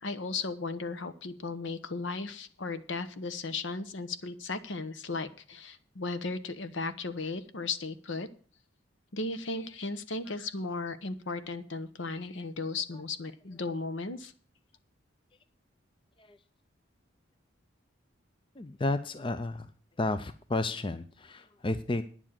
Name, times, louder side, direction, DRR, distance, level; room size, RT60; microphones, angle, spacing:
voice 1, 0.0-8.3 9.1-14.3, left 3 dB, 65° left, 12 dB, 1.0 m, -36 dB
voice 2, 18.6-19.7 20.0-22.0, left 2 dB, 25° left, 11 dB, 0.5 m, -32 dB
9.8 x 7.3 x 7.4 m, 0.42 s
head